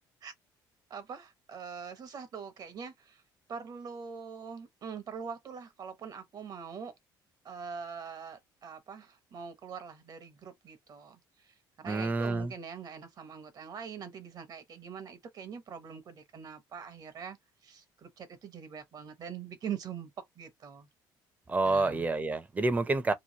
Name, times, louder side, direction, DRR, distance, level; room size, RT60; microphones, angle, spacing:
voice 1, 0.9-3.2 3.5-6.9 7.4-17.4 17.6-20.9 21.6-22.1, right 6 dB, 50° right, 0.9 m, -43 dB
voice 2, 11.8-12.5 21.5-23.1, right 3 dB, 20° right, 0.6 m, -28 dB
3.0 x 2.4 x 2.8 m
cardioid pair, 100°, 9 cm